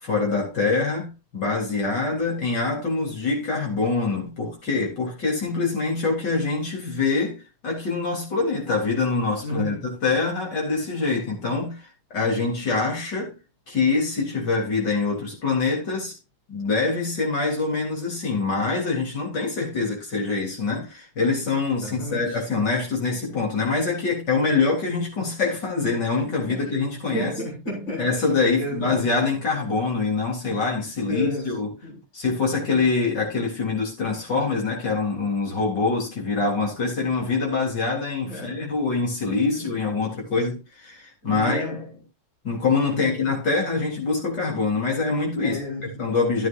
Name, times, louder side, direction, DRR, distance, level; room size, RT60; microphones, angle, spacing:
voice 1, 0.0-11.8 12.1-13.3 13.7-16.2 16.5-27.3 28.0-31.7 32.1-41.6 42.4-45.6 46.0-46.5, left 4 dB, 55° left, 4.2 m, -24 dB
voice 2, 9.4-9.9 21.8-22.4 26.5-26.7 27.1-28.2 28.5-29.1 31.1-32.0 38.2-38.6 39.5-39.7 41.2-42.0 42.9-43.2 45.4-45.9, equal, 40° left, 7.0 m, -32 dB
14.0 x 9.2 x 2.6 m
omnidirectional pair, 2.2 m